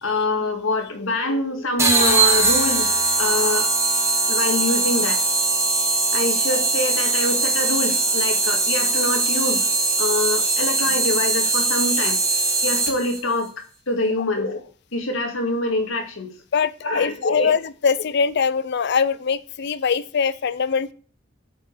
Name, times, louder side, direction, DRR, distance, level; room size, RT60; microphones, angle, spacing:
voice 1, 0.0-3.7 4.3-5.2 6.1-12.2 12.6-14.6 14.9-16.3 16.8-17.5, left 2 dB, 70° left, 4 dB, 2.0 m, -25 dB
sound 1, 1.8-13.2, right 3 dB, 15° right, 2.5 m, -21 dB
voice 2, 16.5-20.9, left 6 dB, 55° left, 16 dB, 0.5 m, -22 dB
8.4 x 5.1 x 6.7 m, 0.41 s
head